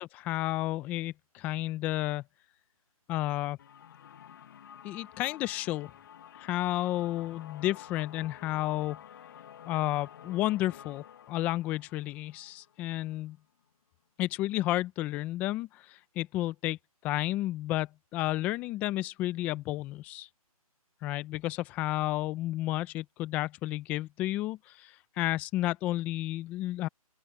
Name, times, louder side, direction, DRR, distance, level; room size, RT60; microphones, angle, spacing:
voice 1, 0.0-2.2 3.1-3.6 4.8-5.9 6.3-9.0 9.6-13.4 14.2-16.8 17.0-20.3 21.0-26.9, left 16 dB, 10° left, 0.6 m, -32 dB
sound 1, 3.6-13.3, left 9 dB, 35° left, 1.7 m, -51 dB
open air
hypercardioid pair, 160°, 19 cm